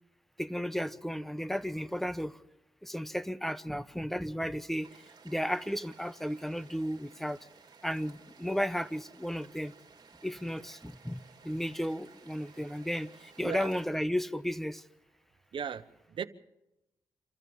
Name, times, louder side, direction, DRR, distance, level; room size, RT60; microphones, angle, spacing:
voice 1, 0.4-2.3 2.8-4.9 5.2-7.4 7.8-9.7 10.2-11.2 11.4-13.1 13.4-14.8, equal, 5° left, 1.0 m, -33 dB
sound 1, 4.8-13.8, right 5 dB, 50° right, 3.2 m, -57 dB
voice 2, 15.5-16.3, right 7 dB, 65° right, 1.2 m, -37 dB
27.0 x 13.5 x 7.3 m
cardioid pair, 65°, 9 cm